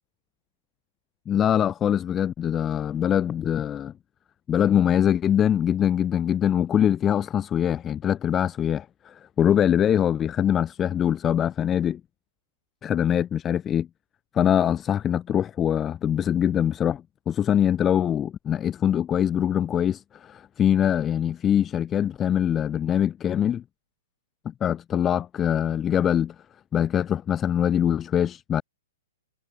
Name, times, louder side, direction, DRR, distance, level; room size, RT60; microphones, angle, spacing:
voice 1, 1.3-3.9 4.5-12.0 12.8-13.9 14.3-23.6 24.6-26.3 26.7-28.6, left 9 dB, 20° left, 1.2 m, -23 dB
figure-of-eight pair, 115°, 0 cm